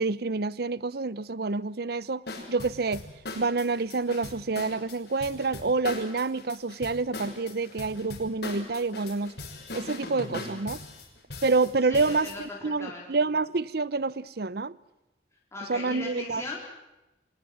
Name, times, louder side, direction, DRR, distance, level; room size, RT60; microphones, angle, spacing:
voice 1, 0.0-2.2 2.5-3.1 3.3-9.4 9.7-10.8 11.4-14.8 15.7-16.4, right 3 dB, 60° right, 0.8 m, -28 dB
sound 1, 2.3-12.4, left 2 dB, 65° left, 6.2 m, -40 dB
voice 2, 11.8-13.2 15.5-16.7, left 2 dB, 15° left, 4.2 m, -39 dB
26.0 x 19.5 x 7.7 m
head